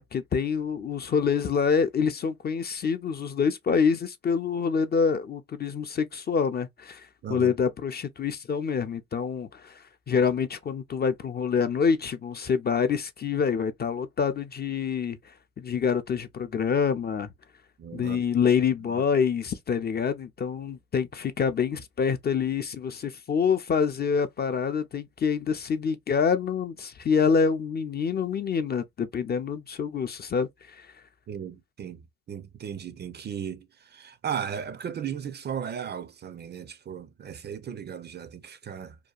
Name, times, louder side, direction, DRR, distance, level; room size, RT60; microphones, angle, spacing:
voice 1, 0.0-9.8 10.1-15.2 15.6-17.3 17.9-30.9, left 6 dB, 35° left, 0.4 m, -26 dB
voice 2, 7.2-7.6 17.8-18.2 31.3-32.0 32.3-39.0, right 8 dB, 35° right, 0.4 m, -36 dB
2.7 x 2.2 x 2.3 m
cardioid pair, 90°, 30 cm